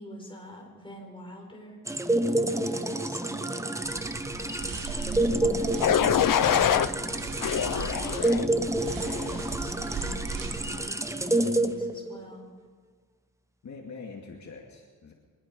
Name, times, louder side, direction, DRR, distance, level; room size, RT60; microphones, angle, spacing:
voice 1, 0.0-12.4, equal, 15° left, 0 dB, 5.5 m, -46 dB
sound 1, 1.9-12.4, right 1 dB, 10° right, 0.9 m, -29 dB
sound 2, 3.8-10.8, right 4 dB, 80° right, 2.4 m, -38 dB
sound 3, 5.8-6.9 7.4-8.4 9.0-9.4, left 10 dB, 75° left, 0.8 m, -25 dB
voice 2, 13.6-15.1, left 4 dB, 55° left, 0 dB, 2.4 m, -44 dB
23.5 x 21.0 x 5.5 m, 1.5 s
wide cardioid pair, 140°, 33 cm